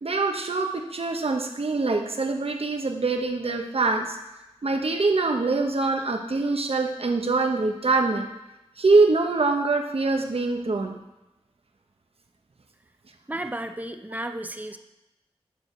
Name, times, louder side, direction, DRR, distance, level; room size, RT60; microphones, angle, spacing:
voice 1, 0.0-4.2 4.6-8.3 8.8-11.0, right 3 dB, 65° right, 3 dB, 0.9 m, -24 dB
voice 2, 13.3-14.8, right 1 dB, 15° right, 7 dB, 0.7 m, -33 dB
9.7 x 4.7 x 6.6 m, 0.97 s
wide cardioid pair, 60°, 11 cm